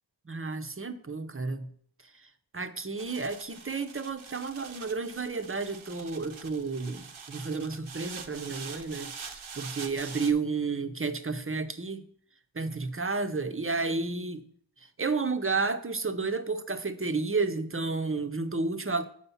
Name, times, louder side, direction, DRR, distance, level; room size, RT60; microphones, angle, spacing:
voice 1, 0.3-1.7 2.0-12.1 12.5-14.5 14.8-19.0, right 4 dB, 30° right, 0.6 m, -32 dB
sound 1, 3.0-10.3, right 6 dB, 80° right, 0.7 m, -44 dB
7.0 x 4.7 x 5.5 m
wide cardioid pair, 40°, 47 cm